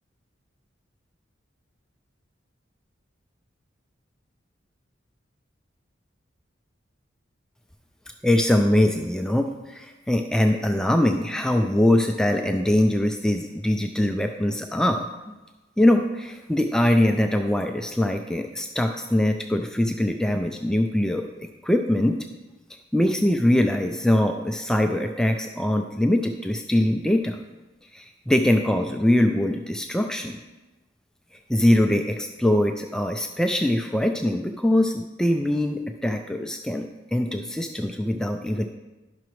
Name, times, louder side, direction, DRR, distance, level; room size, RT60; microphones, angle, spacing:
voice 1, 8.2-15.3 15.8-22.2 22.9-27.4 27.9-30.4 31.5-38.6, left 1 dB, 5° left, 4 dB, 0.3 m, -22 dB
11.5 x 5.9 x 3.1 m, 1.1 s
head